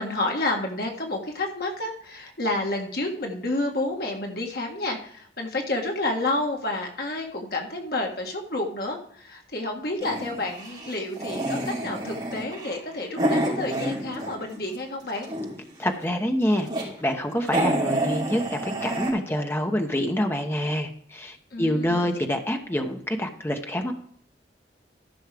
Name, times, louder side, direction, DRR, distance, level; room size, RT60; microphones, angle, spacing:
voice 1, 0.0-15.3 21.5-22.2, left 2 dB, 60° left, 2 dB, 1.6 m, -30 dB
sound 1, 10.0-14.6 14.9-15.8 16.3-16.9 17.2-17.3 17.4-19.1, right 1 dB, 25° right, 4.2 m, -28 dB
voice 2, 15.8-16.7 17.0-23.9, equal, 15° left, 4 dB, 1.0 m, -26 dB
14.0 x 6.3 x 3.4 m, 0.64 s
head